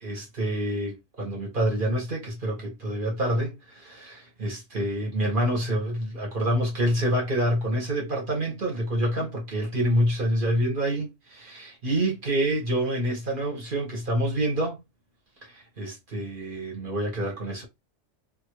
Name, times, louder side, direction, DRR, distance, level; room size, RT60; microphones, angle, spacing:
voice 1, 0.0-14.8 15.4-17.6, right 1 dB, 45° right, 1.2 m, -27 dB
2.6 x 2.6 x 3.0 m
omnidirectional pair, 1.3 m